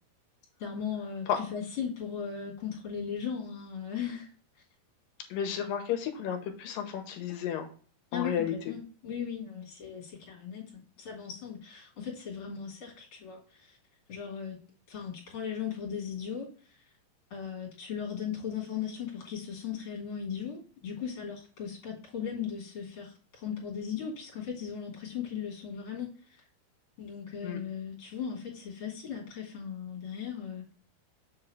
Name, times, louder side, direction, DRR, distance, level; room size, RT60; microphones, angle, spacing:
voice 1, 0.6-4.3 8.1-13.8 14.1-14.6 14.9-16.8 17.3-26.4 27.0-30.8, left 7 dB, 40° left, -3 dB, 2.7 m, -37 dB
voice 2, 5.3-7.7 8.1-8.5 27.4-27.6, left 9 dB, 70° left, 5 dB, 2.5 m, -32 dB
7.3 x 3.8 x 4.5 m, 0.41 s
omnidirectional pair, 4.4 m